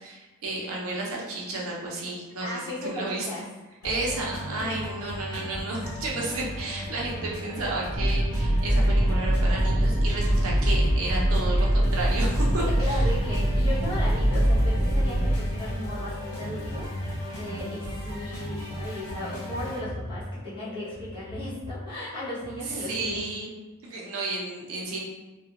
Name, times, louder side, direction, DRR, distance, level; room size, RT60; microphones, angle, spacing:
voice 1, 0.0-3.3 3.8-13.1 22.6-23.5 23.8-25.0, right 2 dB, 70° right, -3 dB, 0.6 m, -32 dB
voice 2, 2.4-3.4 4.6-4.8 12.6-17.0 17.3-23.2, left 1 dB, 20° left, -10 dB, 0.8 m, -36 dB
sound 1, 3.8-19.8, equal, 85° left, 0.8 m, -36 dB
sound 2, 8.0-15.3, right 1 dB, 25° right, 0.4 m, -23 dB
Space Alarm, 14.6-23.2, left 2 dB, 60° left, 0.4 m, -41 dB
2.3 x 2.1 x 2.8 m, 1.1 s
head